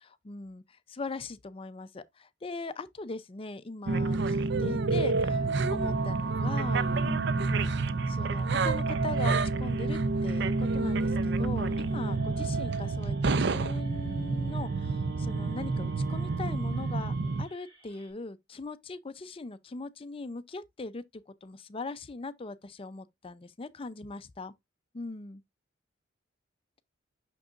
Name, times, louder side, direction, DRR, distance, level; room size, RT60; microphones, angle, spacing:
voice 1, 0.0-7.7 8.2-24.5 25.0-25.4, left 3 dB, 25° left, 0.5 m, -40 dB
sound 1, 3.9-17.4, right 3 dB, 55° right, 0.5 m, -28 dB
sound 2, 11.7-18.1, right 1 dB, 25° right, 4.7 m, -60 dB
6.5 x 6.1 x 2.4 m
head